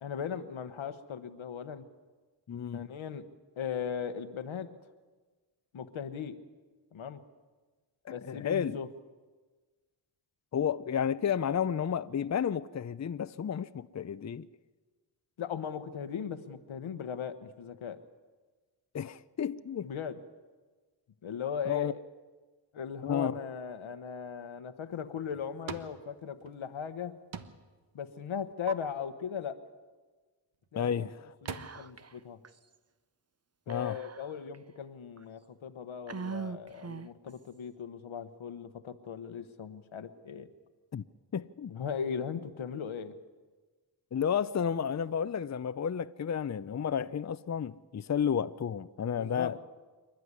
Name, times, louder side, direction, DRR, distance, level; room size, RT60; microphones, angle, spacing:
voice 1, 0.0-1.8 2.7-3.3 3.6-4.7 5.7-6.4 6.9-7.2 8.1-8.9 15.4-18.0 19.8-20.2 21.2-22.0 22.7-27.1 27.9-29.6 30.7-31.1 31.4-32.4 33.7-40.5 41.7-43.2 49.2-49.6, left 7 dB, 90° left, 1.2 m, -38 dB
voice 2, 2.5-2.9 8.0-8.8 10.5-14.5 18.9-19.9 21.7-21.9 23.0-23.3 30.8-31.3 33.7-34.0 40.9-41.0 41.3-41.7 44.1-49.6, left 8 dB, 35° left, 0.6 m, -32 dB
sound 1, 24.9-26.0 26.3-27.0 27.3-27.8 28.1-28.7 30.5-30.7 31.1-31.6, right 6 dB, 85° right, 1.2 m, -43 dB
Whispering, 31.4-32.2 32.4-32.5 33.7-34.5 35.2-35.3 36.1-37.3, right 6 dB, 35° right, 0.8 m, -41 dB
27.0 x 11.5 x 9.7 m
cardioid pair, 55°, 46 cm